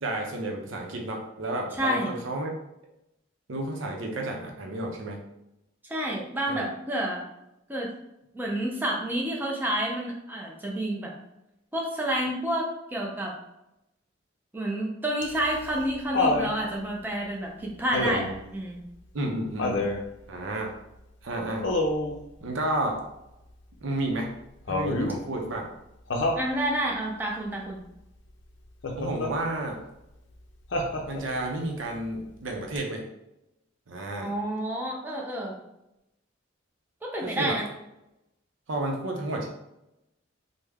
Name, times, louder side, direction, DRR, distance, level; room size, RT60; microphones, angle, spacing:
voice 1, 0.0-2.5 3.5-5.3 6.5-6.6 19.1-19.9 20.3-20.7 21.2-21.7 22.4-23.0 23.8-24.3 24.7-25.7 29.0-29.8 31.1-33.1 33.9-34.3 37.2-37.6 38.7-39.5, right 1 dB, 75° right, 1 dB, 0.6 m, -31 dB
voice 2, 1.7-2.1 5.9-7.2 7.7-7.9 8.3-11.1 11.7-13.3 14.5-18.8 26.4-27.8 34.2-35.6 37.0-37.7, right 1 dB, 10° right, -2 dB, 0.5 m, -29 dB
Laughter, 15.2-16.5 17.9-18.4 19.6-20.0 21.6-22.2 24.7-25.2 26.1-26.5 28.8-29.3 30.7-31.4 32.8-32.9, left 2 dB, 65° left, 0.5 m, -27 dB
3.4 x 2.1 x 3.4 m, 0.88 s
head